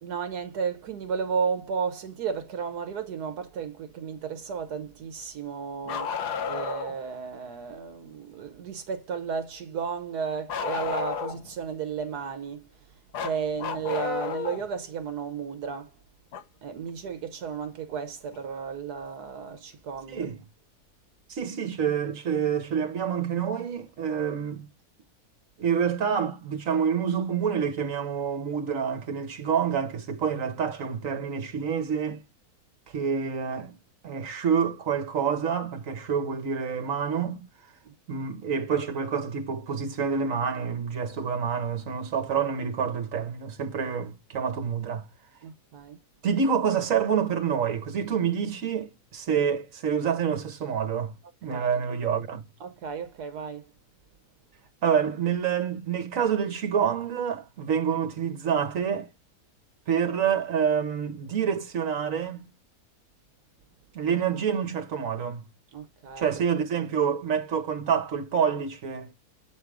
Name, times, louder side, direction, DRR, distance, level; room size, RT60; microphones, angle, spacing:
voice 1, 0.0-12.7 13.2-15.9 16.6-20.3 37.8-38.3 45.4-46.0 51.5-51.7 52.6-53.6 65.7-66.4, right 6 dB, 80° right, 1.4 m, -33 dB
Bark, 5.9-7.0 10.5-11.5 13.1-14.6 16.3-16.4 18.3-18.4 19.5-19.6, left 6 dB, 85° left, 1.6 m, -31 dB
voice 2, 21.3-24.7 25.6-32.2 32.9-33.8 34.0-37.5 38.1-45.1 46.2-51.1 51.4-52.4 54.8-59.1 59.9-62.4 63.9-65.4 66.2-69.1, right 7 dB, 60° right, 1.5 m, -27 dB
8.2 x 3.7 x 4.7 m
omnidirectional pair, 1.7 m